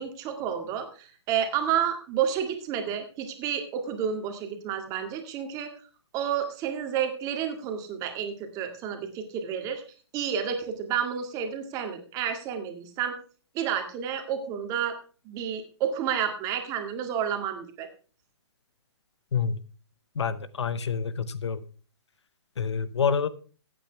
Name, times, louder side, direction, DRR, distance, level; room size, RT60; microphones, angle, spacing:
voice 1, 0.0-5.7 6.1-9.8 10.1-13.1 13.5-14.9 15.3-17.9, right 8 dB, 25° right, 5 dB, 1.9 m, -30 dB
voice 2, 20.2-21.6 22.6-23.3, left 6 dB, 80° left, 15 dB, 1.0 m, -27 dB
14.5 x 8.7 x 3.4 m, 0.37 s
hypercardioid pair, 150°, 14 cm